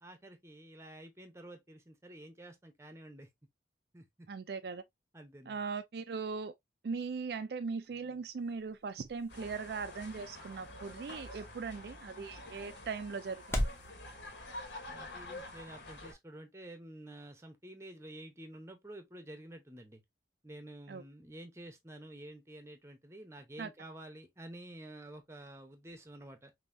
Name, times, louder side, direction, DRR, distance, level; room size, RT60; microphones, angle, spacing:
voice 1, 0.0-3.3 3.9-4.3 5.1-5.6 14.9-20.0 20.4-26.5, right 1 dB, 15° right, 0.8 m, -50 dB
voice 2, 4.3-4.8 5.5-6.5 6.8-13.6 20.9-21.0 23.6-23.7, right 5 dB, 60° right, 0.4 m, -39 dB
sound 1, 7.6-13.9, equal, 15° left, 0.8 m, -42 dB
sound 2, 9.3-16.1, left 1 dB, 85° left, 1.6 m, -48 dB
5.3 x 2.8 x 2.6 m
head